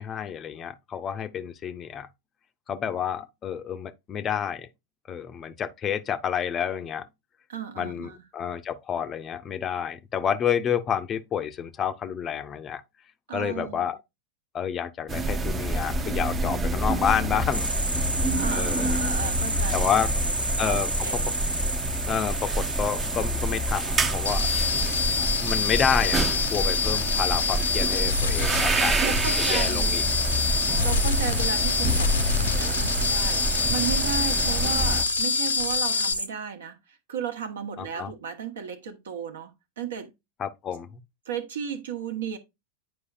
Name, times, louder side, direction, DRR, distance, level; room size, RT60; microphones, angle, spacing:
voice 1, 0.0-2.1 2.7-4.7 5.1-7.0 7.8-12.8 13.3-14.0 14.5-17.7 18.5-19.0 19.7-20.1 20.6-20.9 22.1-24.5 25.2-29.2 29.5-30.0 37.8-38.1 40.4-41.0, left 8 dB, 25° left, 0.6 m, -29 dB
voice 2, 7.5-8.2 13.3-13.9 18.4-20.0 20.2-20.3 20.6-21.3 29.0-30.0 30.8-40.1 41.3-42.4, right 8 dB, 65° right, 1.0 m, -34 dB
sound 1, 15.1-35.0, right 2 dB, 20° right, 0.6 m, -28 dB
sound 2, 17.5-36.3, right 1 dB, 85° right, 0.7 m, -32 dB
sound 3, 24.3-36.1, left 6 dB, 65° left, 0.7 m, -27 dB
9.7 x 4.8 x 2.4 m
figure-of-eight pair, 90°, 0 cm